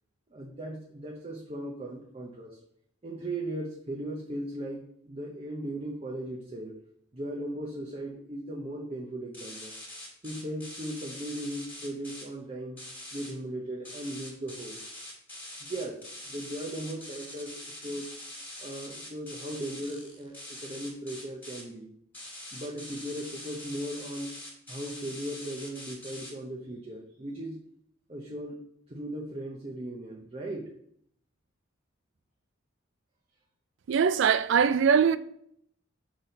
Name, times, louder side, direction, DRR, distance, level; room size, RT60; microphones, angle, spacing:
voice 1, 0.3-2.6 3.0-6.7 7.1-9.7 10.2-12.8 13.1-14.8 15.6-16.0 16.3-18.2 18.6-21.9 22.5-24.4 24.7-27.6 28.1-28.6 28.9-30.7, right 1 dB, 30° right, 0.8 m, -37 dB
sound 1, 9.3-12.2 12.8-13.3 13.8-21.6 22.1-26.3, left 1 dB, 10° left, 2.1 m, -44 dB
voice 2, 33.9-35.2, right 7 dB, 60° right, 0.4 m, -22 dB
6.2 x 4.1 x 5.0 m
head